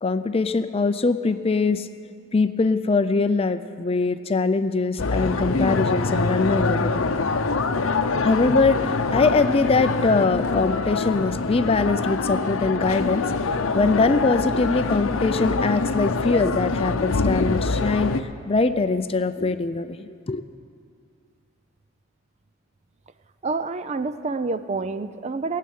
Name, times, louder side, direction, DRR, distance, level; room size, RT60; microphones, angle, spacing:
voice 1, 0.0-1.9 2.3-7.1 8.2-13.2 13.7-18.1 18.5-20.4, left 3 dB, 30° left, 11 dB, 0.4 m, -22 dB
sound 1, 5.0-18.2, left 3 dB, 80° left, 0.7 m, -24 dB
voice 2, 23.4-25.6, right 3 dB, 35° right, 12 dB, 0.4 m, -28 dB
18.5 x 7.6 x 9.4 m, 2.3 s
head